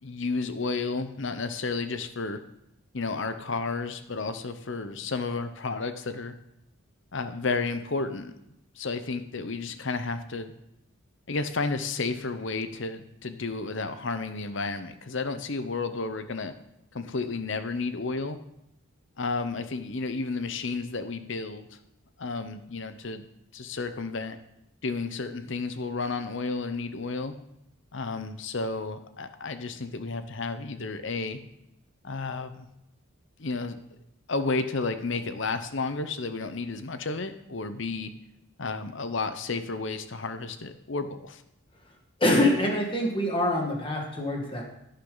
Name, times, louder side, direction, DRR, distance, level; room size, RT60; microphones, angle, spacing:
voice 1, 0.0-2.4 2.9-6.3 7.1-8.3 8.7-10.5 11.3-16.5 16.9-18.4 19.2-21.7 22.2-23.2 23.5-24.4 24.8-27.3 27.9-31.4 32.0-32.7 33.4-33.8 34.3-38.1 38.6-41.4, left 3 dB, 55° left, 10 dB, 0.8 m, -32 dB
voice 2, 42.2-44.6, left 1 dB, 25° left, 0 dB, 1.9 m, -25 dB
11.5 x 10.0 x 3.9 m, 0.86 s
head